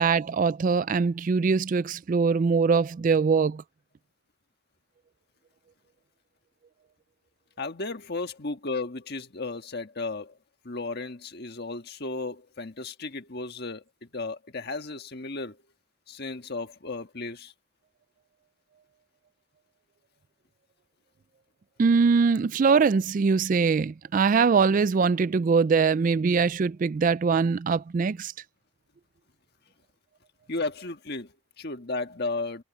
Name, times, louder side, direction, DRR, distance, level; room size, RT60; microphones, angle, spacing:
voice 1, 0.0-3.6 21.8-28.3, right 5 dB, 40° right, 0.3 m, -22 dB
voice 2, 7.6-10.4 10.6-15.6 16.1-17.5 30.5-32.6, left 3 dB, 50° left, 1.6 m, -34 dB
head